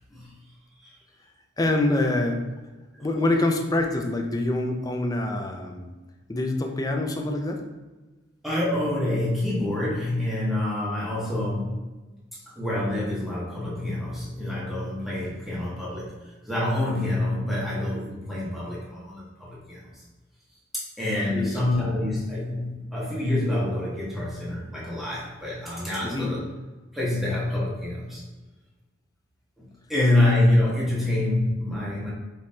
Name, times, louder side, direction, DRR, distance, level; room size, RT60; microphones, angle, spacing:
voice 1, 1.6-2.4 3.0-5.8 6.3-7.6 21.3-21.5 26.0-26.3, left 2 dB, 20° left, 3 dB, 0.5 m, -25 dB
voice 2, 8.4-11.8 12.3-16.1 16.4-20.0 20.7-26.4 26.9-28.2 29.6-29.7 29.9-32.1, left 1 dB, ahead, -8 dB, 1.2 m, -26 dB
5.2 x 3.0 x 2.7 m, 1.2 s
head